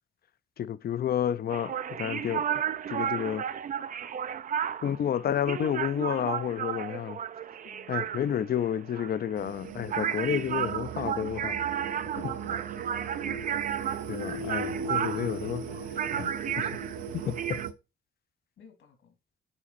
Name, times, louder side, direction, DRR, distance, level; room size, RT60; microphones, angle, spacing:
voice 1, 0.6-2.5 2.9-3.5 4.8-7.2 7.9-11.6 12.2-12.4 14.1-15.6 16.2-16.3 16.6-16.7 17.1-17.6, left 9 dB, 50° left, 0.6 m, -30 dB
sound 1, 1.5-17.7, right 9 dB, 40° right, 0.5 m, -33 dB
voice 2, 7.6-8.2 12.4-12.9 14.8-15.5 18.6-19.2, left 6 dB, 75° left, 3.2 m, -56 dB
sound 2, 9.4-17.7, right 5 dB, 85° right, 0.8 m, -38 dB
8.8 x 4.1 x 4.2 m
cardioid pair, 90°, 20 cm